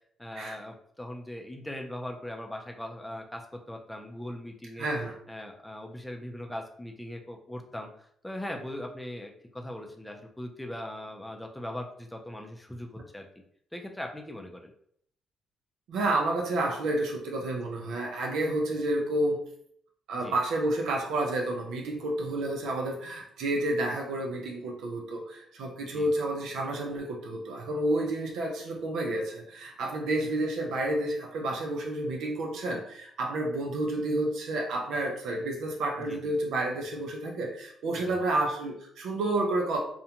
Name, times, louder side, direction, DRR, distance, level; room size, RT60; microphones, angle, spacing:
voice 1, 0.2-4.9 5.3-13.3 13.7-14.7 20.1-20.4 25.8-26.1 30.2-30.3 36.1-36.2 37.9-38.2, left 1 dB, 5° left, 2 dB, 0.4 m, -40 dB
voice 2, 4.8-5.1 15.9-19.4 20.1-39.8, right 1 dB, 80° right, 1 dB, 0.5 m, -30 dB
2.5 x 2.1 x 2.8 m, 0.65 s
cardioid pair, 90°, 0 cm